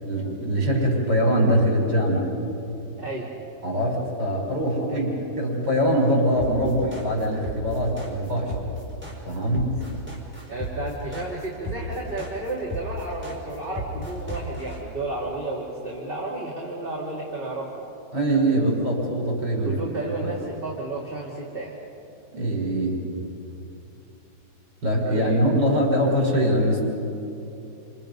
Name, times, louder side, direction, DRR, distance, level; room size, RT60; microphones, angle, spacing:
voice 1, 0.0-2.3 3.6-8.5 9.2-9.7 18.1-19.8 20.2-20.3 22.3-23.0 24.8-26.8, equal, 60° right, -1 dB, 6.0 m, -23 dB
voice 2, 3.0-3.3 4.9-5.0 10.5-17.8 19.6-21.7 25.1-25.4, right 2 dB, 30° right, -3 dB, 2.8 m, -32 dB
sound 1, 6.4-14.8, equal, 5° right, 4.9 m, -34 dB
30.0 x 27.5 x 5.4 m, 2.8 s
omnidirectional pair, 2.1 m